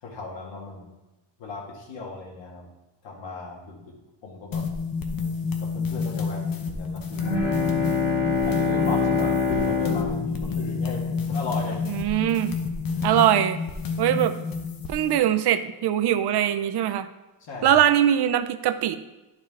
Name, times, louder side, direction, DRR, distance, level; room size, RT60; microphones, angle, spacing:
voice 1, 0.0-0.9 1.4-2.7 3.0-3.9 4.2-4.8 5.6-7.5 8.5-11.8 13.0-13.1 17.4-17.8, left 3 dB, 75° left, -3 dB, 2.1 m, -36 dB
sound 1, 4.5-15.2, left 5 dB, 50° left, 0.9 m, -30 dB
Bowed string instrument, 7.1-11.6, left 5 dB, 30° left, 2.3 m, -26 dB
voice 2, 11.9-12.5 13.0-13.6 14.0-14.3 14.9-17.1 17.6-19.0, right 11 dB, 60° right, 10 dB, 0.6 m, -21 dB
11.0 x 4.9 x 3.7 m, 1.1 s
cardioid pair, 165°, 45 cm